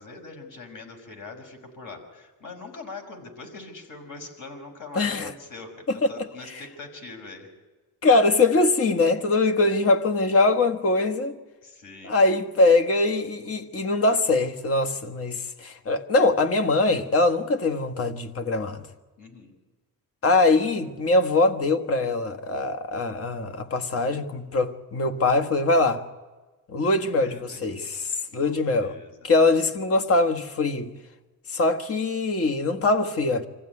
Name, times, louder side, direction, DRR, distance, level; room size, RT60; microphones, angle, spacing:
voice 1, 0.0-7.5 11.6-12.1 19.2-19.5 26.8-27.7 28.4-29.2, left 3 dB, 50° left, 5.7 m, -42 dB
voice 2, 4.9-5.3 8.0-11.3 12.0-18.9 20.2-26.0 26.7-29.0 29.2-30.9 31.5-33.5, left 2 dB, 35° left, 1.5 m, -22 dB
26.0 x 15.5 x 9.8 m
cardioid pair, 155°, 39 cm